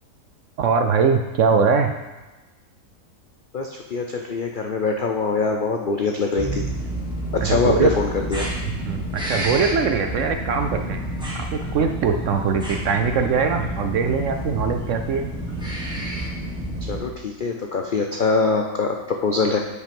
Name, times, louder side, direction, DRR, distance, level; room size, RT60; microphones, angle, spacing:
voice 1, 0.6-1.9 7.4-7.9 8.8-15.3, right 5 dB, 70° right, 6 dB, 0.7 m, -22 dB
voice 2, 3.5-6.6 7.3-8.5 16.8-19.6, left 4 dB, 80° left, 2 dB, 0.4 m, -23 dB
sound 1, 6.4-17.0, right 1 dB, 5° right, 1.6 m, -29 dB
8.2 x 5.7 x 5.2 m, 1.2 s
omnidirectional pair, 1.7 m